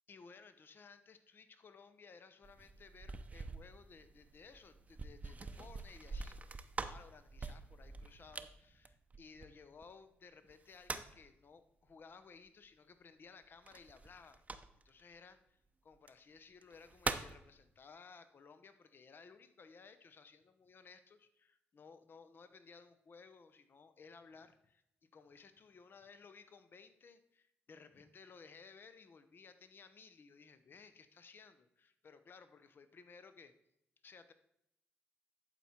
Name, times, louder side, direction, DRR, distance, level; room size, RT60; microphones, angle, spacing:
voice 1, 0.1-14.4 14.8-24.8 25.1-33.5 34.0-34.3, left 5 dB, 50° left, 11 dB, 0.6 m, -58 dB
sound 1, 2.4-9.8 10.5-11.3 13.7-15.0 15.9-16.1 16.6-17.4, right 3 dB, 30° right, 0.6 m, -45 dB
11.0 x 4.4 x 4.3 m, 0.79 s
cardioid pair, 70°, 5 cm